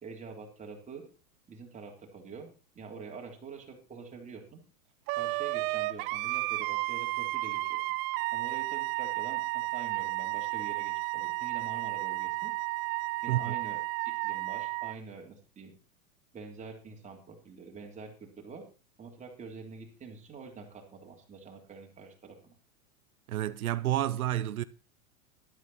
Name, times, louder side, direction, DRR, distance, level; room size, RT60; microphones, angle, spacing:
voice 1, 0.0-1.0 1.5-2.5 2.8-4.6 5.1-7.8 8.3-12.5 13.2-13.8 14.2-15.7 16.3-18.6 19.0-22.5, right 5 dB, 15° right, 3.5 m, -46 dB
Wind instrument woodwind instrument, 5.1-14.9, right 22 dB, 45° right, 0.7 m, -32 dB
voice 2, 23.3-24.6, right 13 dB, 90° right, 0.9 m, -30 dB
12.5 x 12.0 x 4.3 m
supercardioid pair, 135°, 42 cm